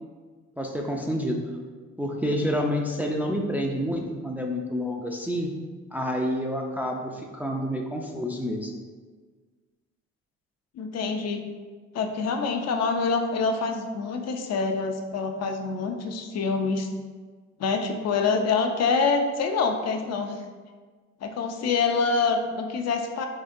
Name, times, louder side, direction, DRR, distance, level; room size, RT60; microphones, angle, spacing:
voice 1, 0.6-1.5 2.0-5.5 5.9-8.7, equal, 5° right, 0 dB, 0.3 m, -28 dB
voice 2, 10.7-11.4 11.9-16.9 17.6-20.4 21.2-23.3, left 4 dB, 60° left, 4 dB, 0.5 m, -26 dB
3.8 x 3.4 x 2.5 m, 1.5 s
cardioid pair, 90°, 30 cm